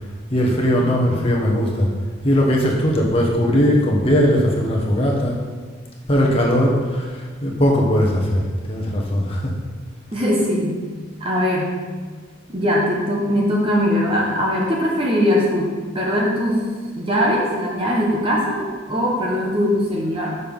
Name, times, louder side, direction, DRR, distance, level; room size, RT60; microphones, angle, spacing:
voice 1, 0.3-1.9 2.2-5.4 6.1-9.5, equal, 25° left, -2 dB, 1.2 m, -19 dB
voice 2, 10.1-10.8 11.2-11.8 12.5-16.6 17.0-20.4, equal, 25° right, -3 dB, 1.1 m, -21 dB
6.8 x 5.5 x 5.4 m, 1.5 s
head